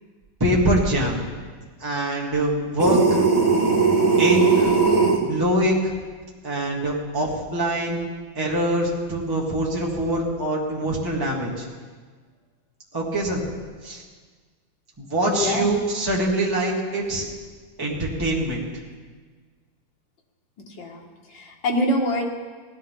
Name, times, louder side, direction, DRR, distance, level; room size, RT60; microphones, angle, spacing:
voice 1, 0.4-1.2 1.8-3.2 4.2-4.7 5.3-5.9 6.4-8.0 8.4-11.7 12.9-13.4 13.8-14.0 15.0-17.2 17.8-18.6, right 1 dB, 10° right, -4 dB, 1.9 m, -24 dB
sound 1, 2.8-5.2, right 4 dB, 35° right, 2.6 m, -18 dB
voice 2, 15.3-15.8 20.8-21.0 21.3-22.3, left 1 dB, 70° left, -1 dB, 2.3 m, -24 dB
18.0 x 12.0 x 3.7 m, 1.5 s
omnidirectional pair, 2.1 m